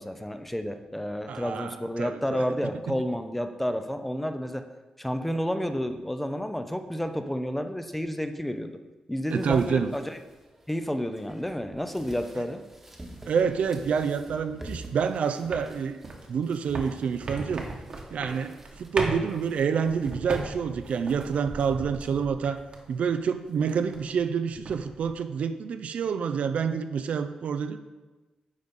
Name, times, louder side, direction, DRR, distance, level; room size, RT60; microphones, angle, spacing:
voice 1, 0.0-4.6 5.0-8.7 9.1-10.2 10.7-12.6, equal, 5° left, 8 dB, 0.5 m, -30 dB
voice 2, 1.3-2.4 2.9-3.0 9.3-9.9 13.3-16.0 16.3-17.7 18.1-22.6 22.9-27.8, right 6 dB, 70° right, 10 dB, 0.5 m, -28 dB
sound 1, 9.4-20.1, right 1 dB, 15° right, 1.2 m, -48 dB
sound 2, 15.4-23.0 23.3-24.2 24.5-25.1, right 2 dB, 45° right, 1.2 m, -37 dB
9.9 x 4.1 x 5.2 m, 1.2 s
wide cardioid pair, 135°, 2 cm